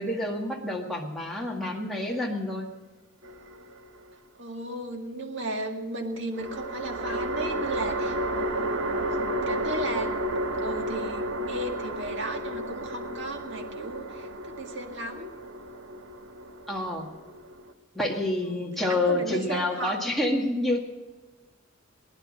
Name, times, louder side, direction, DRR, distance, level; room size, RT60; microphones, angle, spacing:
voice 1, 0.0-2.7 16.7-17.1 17.9-20.9, left 1 dB, ahead, -2 dB, 1.9 m, -28 dB
sound 1, 3.2-4.1 6.4-17.7, right 1 dB, 80° right, 1.5 m, -32 dB
voice 2, 4.4-8.7 9.0-15.3 18.5-20.0, right 2 dB, 60° right, 3 dB, 2.0 m, -35 dB
20.0 x 10.5 x 6.3 m, 1.2 s
head